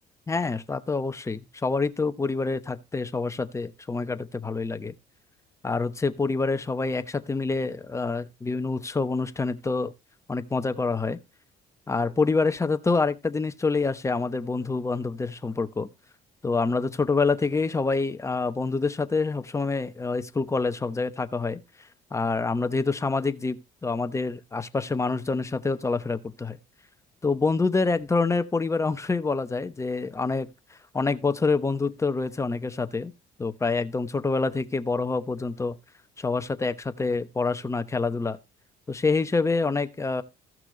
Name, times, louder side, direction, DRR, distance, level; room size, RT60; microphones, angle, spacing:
voice 1, 0.3-4.9 5.6-9.9 10.3-11.2 11.9-15.9 16.4-21.6 22.1-26.6 27.2-30.5 30.9-33.1 33.4-35.8 36.2-38.4 38.9-40.2, left 4 dB, 15° left, 1.0 m, -26 dB
15.0 x 6.1 x 3.9 m
cardioid pair, 110°, 17 cm